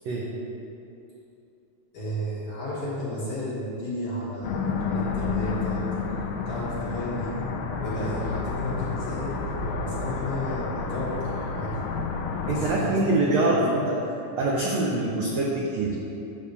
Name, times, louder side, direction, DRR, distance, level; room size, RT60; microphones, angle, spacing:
voice 1, 1.9-5.8 6.5-7.4 7.8-11.8 12.5-13.7, equal, 55° left, -8 dB, 1.8 m, -33 dB
sound 1, 4.4-12.7, left 4 dB, 75° left, 2.0 m, -30 dB
voice 2, 12.5-13.8 14.4-16.0, right 2 dB, 80° right, -4 dB, 1.5 m, -24 dB
9.8 x 3.5 x 6.7 m, 2.7 s
omnidirectional pair, 4.1 m